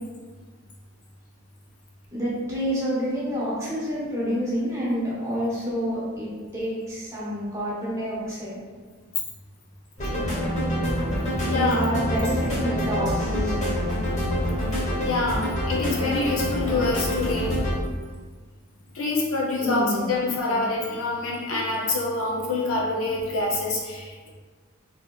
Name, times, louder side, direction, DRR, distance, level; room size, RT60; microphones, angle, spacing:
voice 1, 2.1-6.3 6.5-8.6 10.1-10.4 11.4-13.7 19.6-20.6, equal, 15° right, -8 dB, 0.9 m, -28 dB
sound 1, 10.0-17.8, equal, 30° left, 0.9 m, -26 dB
voice 2, 11.4-11.8 15.0-17.6 18.9-24.3, left 3 dB, 75° left, -3 dB, 0.6 m, -26 dB
3.5 x 2.7 x 2.3 m, 1.4 s
head